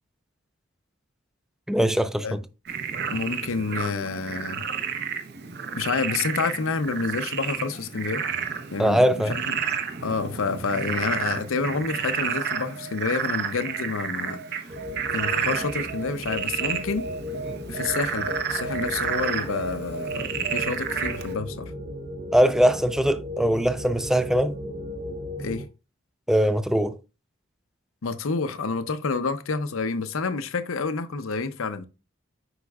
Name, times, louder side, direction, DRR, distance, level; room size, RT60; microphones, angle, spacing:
voice 1, 1.7-2.4 8.8-9.4 22.3-24.5 26.3-27.0, equal, ahead, 0.3 m, -21 dB
Frog, 2.7-21.3, right 6 dB, 50° right, 0.8 m, -31 dB
voice 2, 3.1-4.6 5.7-8.2 8.7-9.6 10.0-14.7 15.1-17.1 17.7-21.7 25.4-25.6 28.0-31.9, left 4 dB, 75° left, 0.6 m, -29 dB
sound 1, 14.7-25.6, left 1 dB, 35° right, 1.4 m, -36 dB
8.0 x 5.2 x 2.4 m
head